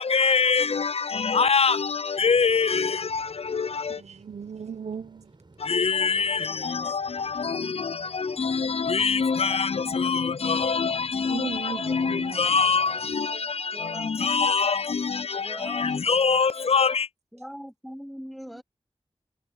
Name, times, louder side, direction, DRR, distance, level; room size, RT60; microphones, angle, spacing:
voice 1, 0.0-4.0 5.6-17.1, left 5 dB, 60° left, 0.6 m, -24 dB
sound 1, 2.2-13.2, right 2 dB, 45° right, 7.7 m, -56 dB
voice 2, 2.4-2.8 3.9-5.6 6.8-7.0 11.3-12.5 12.9-13.0 14.2-14.8 15.5-16.0 16.5-16.7 18.5-18.6, right 6 dB, 80° right, 1.2 m, -39 dB
voice 3, 6.5-6.9 10.7-11.4 11.6-12.0 13.7-14.2 15.4-16.0 17.3-18.6, equal, ahead, 0.9 m, -42 dB
cardioid pair, 45°, 11 cm